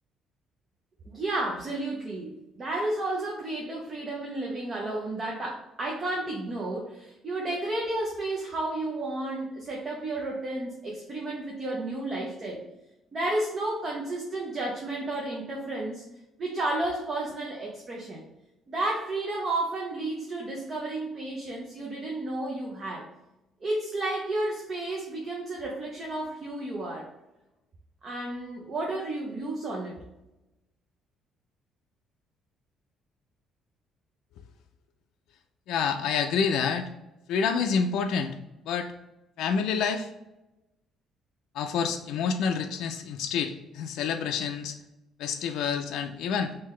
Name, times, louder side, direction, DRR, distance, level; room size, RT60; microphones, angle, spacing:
voice 1, 1.1-12.6 13.1-16.0 16.4-18.2 18.7-23.1 23.6-27.1 28.0-30.0, right 2 dB, 25° right, -2 dB, 0.6 m, -32 dB
voice 2, 35.7-36.8 37.3-38.3 38.7-38.9 39.4-40.1 41.5-44.7 45.2-46.5, left 6 dB, 70° left, 5 dB, 0.3 m, -28 dB
3.7 x 2.7 x 3.1 m, 0.97 s
cardioid pair, 170°, 0 cm